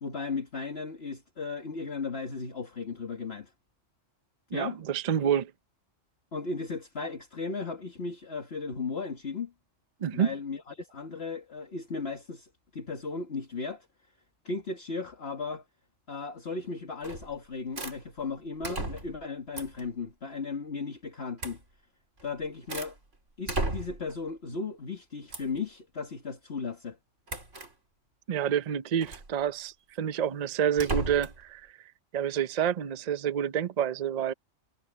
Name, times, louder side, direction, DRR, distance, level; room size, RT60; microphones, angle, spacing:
voice 1, 0.0-3.5 4.5-4.8 6.3-9.5 10.1-13.9 14.4-15.6 16.1-21.6 22.2-23.0 23.4-27.0, left 4 dB, 55° left, 2.2 m, -36 dB
voice 2, 4.5-5.5 10.0-10.3 28.3-31.7 32.1-34.3, right 9 dB, 45° right, 0.6 m, -28 dB
sound 1, 17.0-17.4 17.8-18.0 18.6-19.2 19.5-19.9 21.4-21.6 22.2-23.0 23.5-24.1 25.3-25.6 27.3-27.7 29.0-29.3 30.7-31.4, right 2 dB, 75° right, 4.3 m, -34 dB
omnidirectional pair, 1.3 m